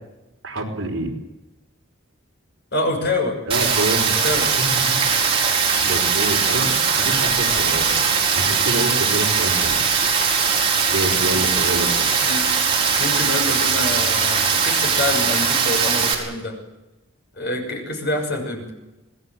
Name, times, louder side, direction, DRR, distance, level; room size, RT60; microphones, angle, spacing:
voice 1, 0.4-1.1 3.5-4.3 4.6-5.0 5.4-8.0 8.3-9.8 10.9-12.1, right 1 dB, 60° right, 1 dB, 4.9 m, -27 dB
voice 2, 2.7-3.4 4.2-4.5 11.2-11.5 12.2-12.5 13.0-16.5 17.3-18.7, left 2 dB, 50° left, 3 dB, 6.7 m, -26 dB
Rain, 3.5-16.1, right 6 dB, 25° right, 4.8 m, -20 dB
26.5 x 19.0 x 7.8 m, 1.0 s
head